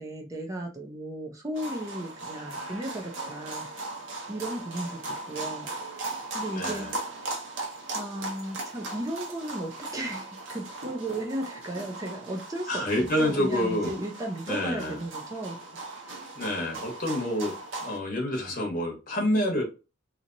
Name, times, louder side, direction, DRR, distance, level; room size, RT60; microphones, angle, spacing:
voice 1, 0.0-3.7 4.3-6.0 6.3-6.9 7.9-12.8 13.2-15.6, right 1 dB, 15° right, 0 dB, 0.6 m, -35 dB
sound 1, 1.5-18.0, right 2 dB, 90° right, 0.8 m, -38 dB
voice 2, 6.5-6.9 12.7-13.9 14.5-15.0 16.3-17.5 17.8-19.6, left 1 dB, 45° left, 0 dB, 1.1 m, -28 dB
2.9 x 2.8 x 2.5 m, 0.31 s
head